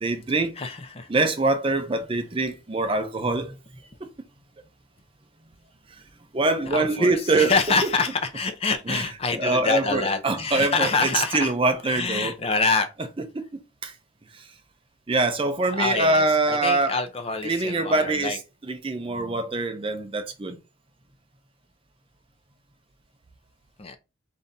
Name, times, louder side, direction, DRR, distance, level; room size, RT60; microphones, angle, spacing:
voice 1, 0.0-0.5 1.1-3.6 4.0-4.1 6.3-7.5 7.8-7.9 8.9-9.0 9.3-12.3 13.3-13.4 13.8-13.9 15.1-17.0 17.4-18.4 18.7-20.6, right 2 dB, 25° right, 0.5 m, -24 dB
voice 2, 0.6-1.1 6.7-11.5 11.8-12.9 15.7-18.4 19.1-19.4 23.8-24.0, left 4 dB, 30° left, 0.5 m, -26 dB
3.6 x 2.7 x 4.0 m
head